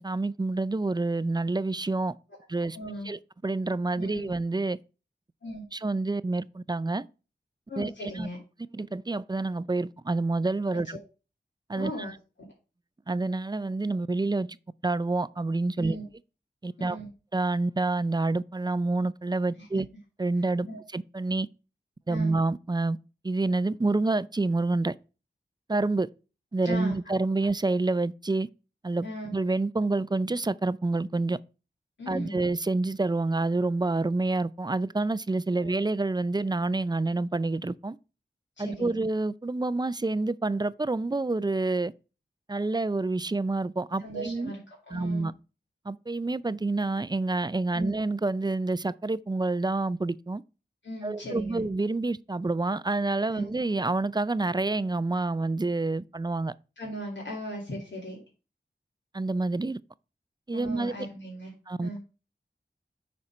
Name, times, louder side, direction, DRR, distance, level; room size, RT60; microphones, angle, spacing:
voice 1, 0.0-2.1 2.5-2.8 3.0-4.8 5.7-7.1 7.8-8.3 8.7-11.0 11.7-12.1 13.1-14.6 14.8-16.0 16.6-17.0 17.3-19.9 20.2-20.7 20.9-21.5 22.1-23.0 23.2-24.9 25.7-26.1 26.5-28.5 28.8-29.1 29.3-31.4 32.1-38.0 38.6-41.9 42.5-44.5 44.9-45.3 45.9-50.4 51.0-56.5 59.1-59.8 60.5-60.9 61.7-62.0, right 2 dB, 25° right, 0.4 m, -28 dB
voice 2, 2.7-3.1 4.0-4.3 5.4-5.7 7.7-8.4 11.8-12.1 15.8-16.1 16.8-17.1 19.6-19.7 20.7-20.8 22.1-22.3 26.6-26.9 29.0-29.3 32.0-32.4 35.6-35.7 38.6-39.0 44.0-44.6 44.9-45.3 47.7-48.0 50.8-51.6 53.3-53.4 56.8-58.2 60.5-61.5 61.8-62.0, equal, 80° left, 2.6 m, -38 dB
9.6 x 4.3 x 5.0 m
wide cardioid pair, 45°, 19 cm